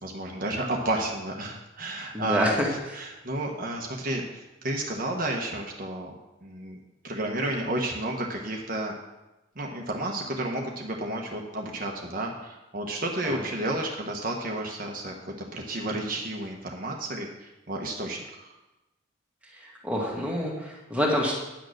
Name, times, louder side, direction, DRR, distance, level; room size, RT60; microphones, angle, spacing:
voice 1, 0.0-6.1 6.4-6.8 7.0-8.9 9.6-15.1 15.5-18.5, right 1 dB, 45° right, 0 dB, 1.2 m, -31 dB
voice 2, 2.1-3.0 13.2-13.4 19.5-21.3, equal, 5° right, -3 dB, 1.9 m, -27 dB
10.0 x 6.5 x 6.5 m, 1.0 s
head